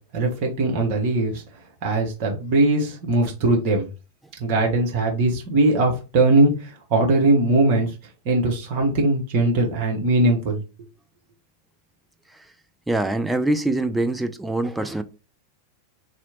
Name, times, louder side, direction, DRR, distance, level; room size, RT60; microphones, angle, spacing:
voice 1, 0.1-1.4 1.8-3.9 4.4-7.9 8.2-10.6, right 2 dB, 45° right, 1.1 m, -20 dB
voice 2, 12.9-15.0, right 2 dB, 5° right, 0.4 m, -24 dB
3.0 x 2.8 x 2.8 m
figure-of-eight pair, 90°, 0 cm